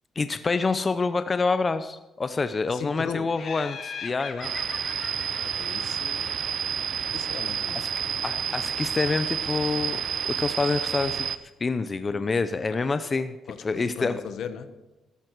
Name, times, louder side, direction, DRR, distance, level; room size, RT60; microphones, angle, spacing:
voice 1, 0.2-4.5 7.7-7.9 8.2-11.3 11.6-13.4 13.6-14.2, left 4 dB, 30° left, 11 dB, 0.6 m, -27 dB
voice 2, 2.7-3.3 5.4-6.3 7.1-7.9 12.8-12.9 13.5-14.7, left 7 dB, 70° left, 10 dB, 1.1 m, -37 dB
Laughter, 3.4-6.7, left 6 dB, 55° left, 1.2 m, -40 dB
sound 1, 4.4-11.4, right 8 dB, 55° right, 0.6 m, -29 dB
14.0 x 12.0 x 4.7 m, 1.1 s
cardioid pair, 90°, 0 cm